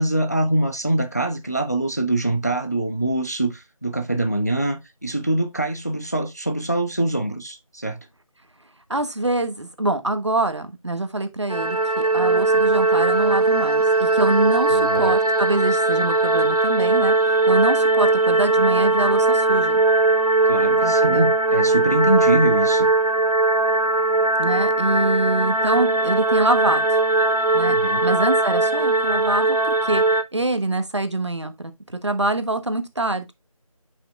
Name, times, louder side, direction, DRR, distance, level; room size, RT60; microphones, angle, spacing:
voice 1, 0.0-8.0 14.7-15.2 20.5-22.9 27.6-28.0, right 1 dB, 30° left, 0.6 m, -24 dB
voice 2, 8.9-19.8 20.8-21.3 24.4-27.0 27.5-27.8 28.0-30.0 30.3-33.3, right 2 dB, 50° right, 1.1 m, -25 dB
sound 1, 11.5-30.2, right 2 dB, 85° right, 1.1 m, -19 dB
9.4 x 5.7 x 2.3 m
figure-of-eight pair, 180°, 18 cm